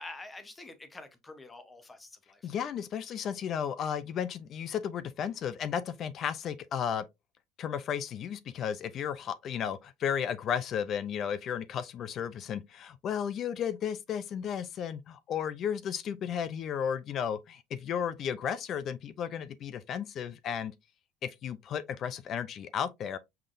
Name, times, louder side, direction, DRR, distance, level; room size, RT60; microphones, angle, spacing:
voice 1, 0.0-2.5, left 2 dB, 10° left, 0.8 m, -47 dB
voice 2, 2.4-7.0 7.6-20.7 21.2-23.2, left 8 dB, 35° left, 0.4 m, -34 dB
5.7 x 3.4 x 2.5 m
cardioid pair, 155°, 0 cm